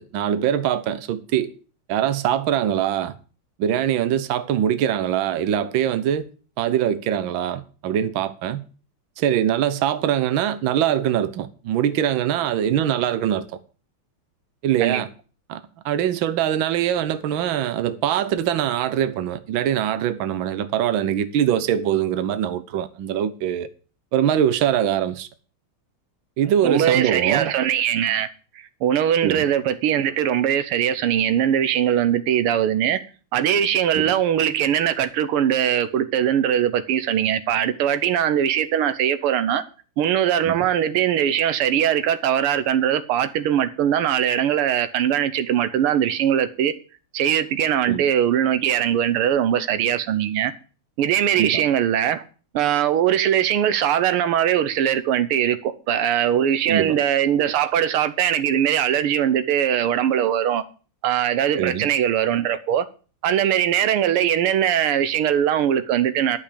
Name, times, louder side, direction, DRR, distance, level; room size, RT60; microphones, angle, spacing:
voice 1, 0.0-1.5 1.9-3.1 3.6-6.3 6.6-8.7 9.2-13.5 14.6-15.1 15.5-23.7 24.1-25.3 26.4-27.5 29.2-29.4 33.9-34.1 40.4-40.6 47.9-48.0 51.3-51.6 56.7-57.0 61.6-61.9, right 10 dB, 70° right, 1.6 m, -23 dB
voice 2, 26.6-28.3 28.8-33.0 33.3-39.6 40.0-46.7 47.1-50.5 51.0-52.2 52.5-60.6 61.0-62.9 63.2-66.4, right 10 dB, 85° right, 1.8 m, -21 dB
11.5 x 5.8 x 8.4 m
omnidirectional pair, 2.4 m